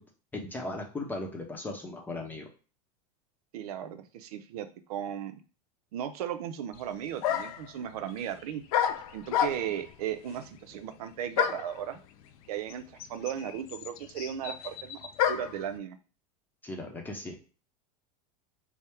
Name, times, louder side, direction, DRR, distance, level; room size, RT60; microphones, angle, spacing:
voice 1, 0.3-2.5 16.6-17.4, left 2 dB, 10° left, 1 dB, 0.7 m, -37 dB
voice 2, 3.5-5.4 5.9-8.6 9.1-12.0 12.5-16.0, right 9 dB, 85° right, 8 dB, 0.6 m, -36 dB
sound 1, 6.7-6.8 7.2-7.7 8.7-9.9 11.4-11.8 12.7-12.8 13.0-15.6, left 9 dB, 75° left, 0.4 m, -29 dB
3.5 x 2.1 x 4.3 m, 0.36 s
supercardioid pair, 145°, 19 cm